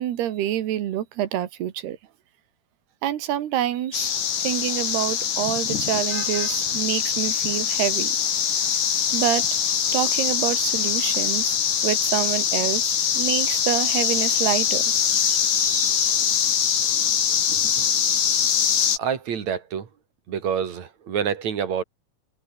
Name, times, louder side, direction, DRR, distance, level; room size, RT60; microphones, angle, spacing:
voice 1, 0.0-2.0 3.0-4.2 4.4-8.1 9.1-9.5 9.9-11.6 11.8-14.8 15.5-16.1, right 12 dB, 85° right, 3.8 m, -27 dB
sound 1, 3.9-19.0, left 8 dB, 80° left, 5.5 m, -23 dB
voice 2, 17.5-17.9 19.0-19.9 20.3-21.8, right 7 dB, 50° right, 3.4 m, -27 dB
omnidirectional pair, 4.6 m